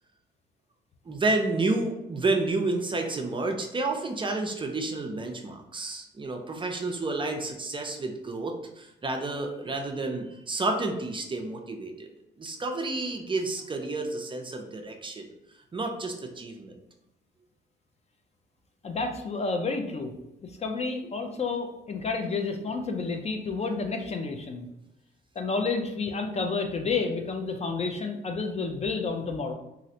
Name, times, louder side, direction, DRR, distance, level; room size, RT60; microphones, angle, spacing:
voice 1, 1.1-12.1 12.4-15.3 15.7-16.8, right 2 dB, 25° right, 3 dB, 0.5 m, -30 dB
voice 2, 18.8-20.1 20.4-24.7 25.4-29.5, left 4 dB, 35° left, 4 dB, 0.4 m, -30 dB
3.0 x 2.5 x 2.7 m, 0.87 s
cardioid pair, 90°, 20 cm